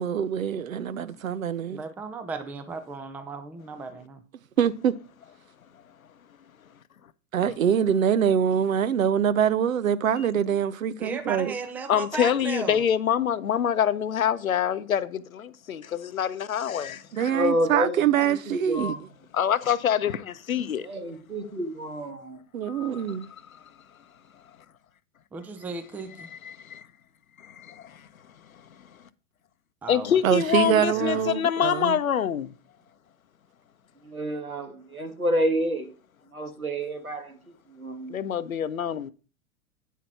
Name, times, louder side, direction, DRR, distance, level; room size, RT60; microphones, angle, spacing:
voice 1, 0.0-1.8 4.6-4.9 7.3-11.5 17.1-18.9 22.5-23.3 30.2-32.0, right 8 dB, 70° right, 0.7 m, -24 dB
voice 2, 1.7-4.2 11.0-12.8 25.3-26.3 29.8-30.2 30.9-31.3, right 4 dB, 5° right, 0.4 m, -36 dB
voice 3, 11.9-17.3 19.3-20.9 22.7-23.0 23.5-23.6 26.2-26.8 27.4-28.1 28.5-28.6 29.9-32.5 38.1-39.1, left 9 dB, 75° left, 0.7 m, -26 dB
voice 4, 17.3-19.0 20.8-22.4 34.0-35.9 36.3-37.4 37.7-38.1, equal, 85° right, 1.5 m, -29 dB
9.3 x 5.8 x 4.4 m
figure-of-eight pair, 90°, 42 cm